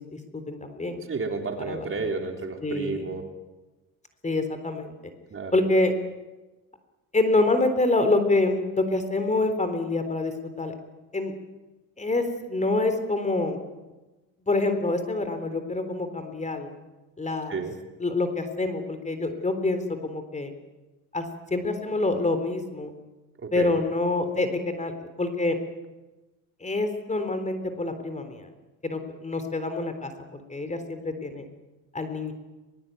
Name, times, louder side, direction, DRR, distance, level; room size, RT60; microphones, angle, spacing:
voice 1, 0.1-1.0 1.7-2.0 2.6-3.0 4.2-4.9 5.5-5.9 7.1-10.7 11.1-11.3 12.0-13.6 14.5-16.7 17.2-17.6 18.0-20.5 21.1-21.3 21.5-22.9 23.5-24.9 25.2-25.6 26.6-28.5 28.8-30.1 30.5-31.5 31.9-32.3, left 2 dB, 20° left, 8 dB, 3.7 m, -26 dB
voice 2, 1.1-3.2 5.3-5.6 17.5-17.7 23.4-23.8, right 4 dB, 35° right, 4 dB, 4.0 m, -31 dB
22.5 x 22.0 x 9.3 m, 1.1 s
cardioid pair, 105°, 38 cm